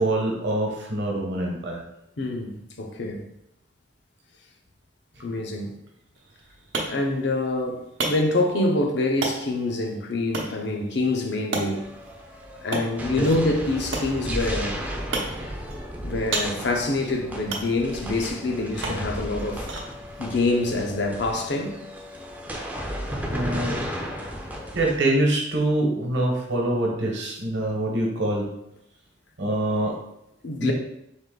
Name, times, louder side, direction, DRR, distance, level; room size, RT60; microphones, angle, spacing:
voice 1, 0.0-1.8 13.2-13.3 23.2-23.8 24.7-28.5 29.4-29.9 30.6-30.7, right 1 dB, 65° right, 1.1 m, -25 dB
voice 2, 2.2-3.2 5.2-5.8 6.9-11.9 12.6-14.8 16.0-19.7 20.2-21.8 30.4-30.7, left 2 dB, 60° left, 0.7 m, -26 dB
sound 1, 6.1-21.8, right 3 dB, 80° right, 0.8 m, -36 dB
sound 2, 11.7-25.0, equal, 10° right, 0.5 m, -34 dB
3.9 x 3.0 x 3.8 m
head